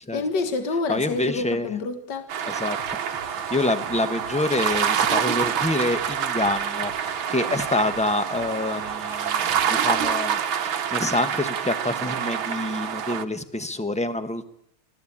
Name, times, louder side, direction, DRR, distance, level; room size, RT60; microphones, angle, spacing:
voice 1, 0.1-2.3, left 3 dB, 55° left, 8 dB, 2.2 m, -27 dB
voice 2, 0.9-1.7 2.4-3.0 3.3-14.4, left 2 dB, 5° left, 9 dB, 0.7 m, -27 dB
sound 1, 2.3-13.2, right 8 dB, 70° right, 1.8 m, -27 dB
sound 2, 2.8-10.2, left 4 dB, 85° left, 3.3 m, -48 dB
25.0 x 16.5 x 8.7 m, 0.75 s
omnidirectional pair, 2.3 m